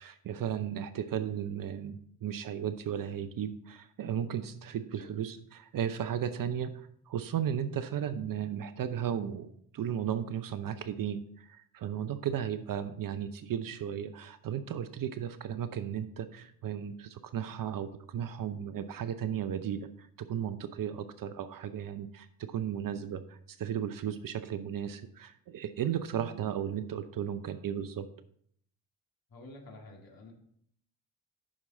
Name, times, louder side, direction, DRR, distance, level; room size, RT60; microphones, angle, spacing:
voice 1, 0.0-28.1, right 9 dB, 45° right, 12 dB, 0.7 m, -35 dB
voice 2, 29.3-30.3, left 2 dB, 45° left, 1 dB, 2.2 m, -50 dB
8.8 x 6.1 x 3.8 m, 0.65 s
hypercardioid pair, 45°, 47 cm